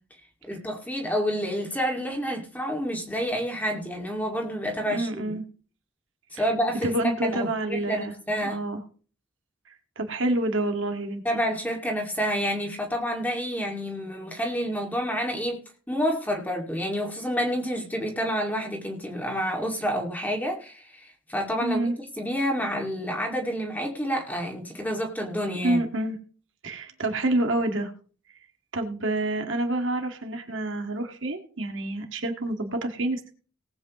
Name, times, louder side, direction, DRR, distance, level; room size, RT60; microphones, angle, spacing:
voice 1, 0.5-5.3 6.3-8.6 11.2-15.6 15.9-21.9 22.2-25.8, equal, 10° left, 1 dB, 2.3 m, -29 dB
voice 2, 4.9-5.4 6.4-6.5 6.8-8.1 8.4-8.8 9.7-11.2 21.6-22.0 25.6-26.2 26.6-27.9 28.7-33.3, right 1 dB, 70° right, 4 dB, 2.0 m, -28 dB
19.0 x 8.4 x 3.1 m, 0.39 s
head